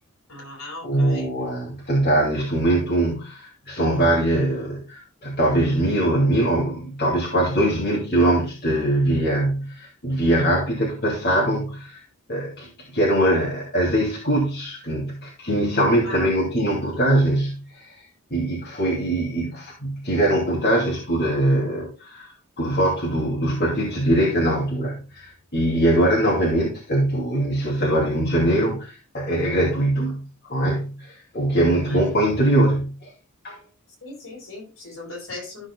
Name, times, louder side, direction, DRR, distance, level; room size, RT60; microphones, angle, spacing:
voice 1, 0.3-1.3 16.0-16.3 16.5-16.6 16.9-17.0 31.6-32.0 34.0-35.6, left 2 dB, 65° left, -1 dB, 4.5 m, -37 dB
voice 2, 0.8-12.0 12.3-18.0 18.3-33.1 33.4-33.6, right 1 dB, 50° left, -4 dB, 2.5 m, -22 dB
13.5 x 6.5 x 2.2 m, 0.33 s
head